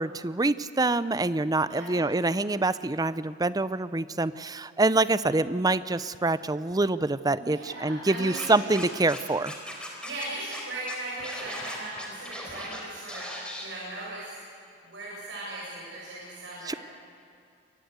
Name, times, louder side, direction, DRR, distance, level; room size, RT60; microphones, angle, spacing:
voice 1, 0.0-9.5 16.7-16.8, right 2 dB, 20° right, 15 dB, 0.6 m, -26 dB
voice 2, 1.7-2.1 7.4-8.5 10.0-13.3 13.6-14.3 14.8-16.7, right 2 dB, 75° right, -6 dB, 7.1 m, -38 dB
Scratching (performance technique), 8.3-9.2 9.5-10.2 10.5-10.6 10.9-12.8 13.1-13.6, left 1 dB, 5° left, 4.2 m, -38 dB
29.0 x 23.0 x 8.1 m, 2.4 s
head